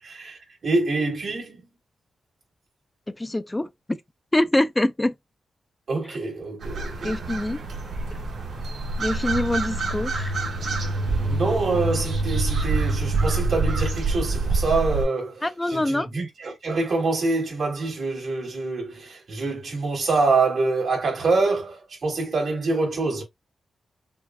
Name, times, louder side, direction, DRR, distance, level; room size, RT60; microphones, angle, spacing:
voice 1, 0.0-1.6 5.9-7.2 11.3-23.2, right 3 dB, 65° right, 2.9 m, -25 dB
voice 2, 3.2-3.7 4.3-5.1 7.0-7.6 9.0-10.3 15.4-16.1, left 1 dB, 15° left, 0.5 m, -24 dB
sound 1, 6.6-15.0, right 3 dB, 80° right, 1.9 m, -26 dB
6.3 x 2.5 x 2.3 m
cardioid pair, 85°, 0 cm